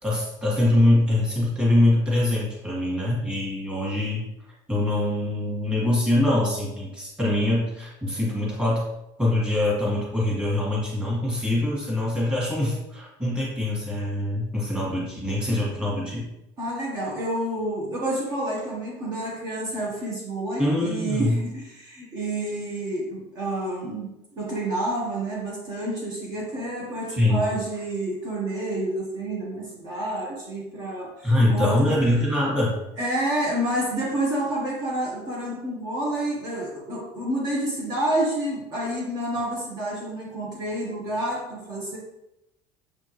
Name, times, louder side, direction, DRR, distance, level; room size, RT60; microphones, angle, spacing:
voice 1, 0.0-4.3 4.7-8.9 9.2-16.3 20.6-21.3 27.1-27.4 31.2-32.8, left 1 dB, 10° right, -5 dB, 1.8 m, -23 dB
voice 2, 16.6-32.0 33.0-42.0, right 1 dB, 40° right, -4 dB, 1.3 m, -29 dB
7.2 x 4.3 x 3.1 m, 0.88 s
cardioid pair, 170°, 11 cm